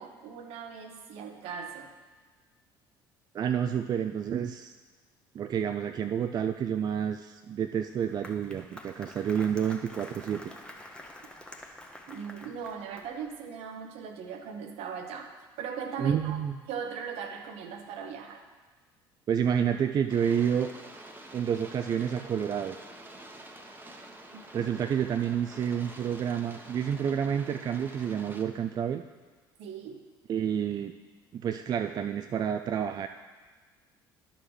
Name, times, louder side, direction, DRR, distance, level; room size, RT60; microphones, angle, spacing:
voice 1, 0.0-1.9 12.1-15.3 15.6-16.4 16.7-18.4 24.3-24.7 29.6-30.0, right 6 dB, 60° right, 6 dB, 0.9 m, -39 dB
voice 2, 3.3-4.7 5.3-10.5 16.0-16.6 19.3-20.7 21.3-22.8 24.5-29.0 30.3-30.9 31.3-33.1, right 8 dB, 35° right, 8 dB, 0.3 m, -29 dB
Applause, 7.8-13.3, left 1 dB, 10° left, 1.0 m, -47 dB
sound 1, 20.1-28.4, right 1 dB, 15° right, 1.0 m, -48 dB
11.0 x 6.4 x 3.2 m, 1.4 s
hypercardioid pair, 60°, 12 cm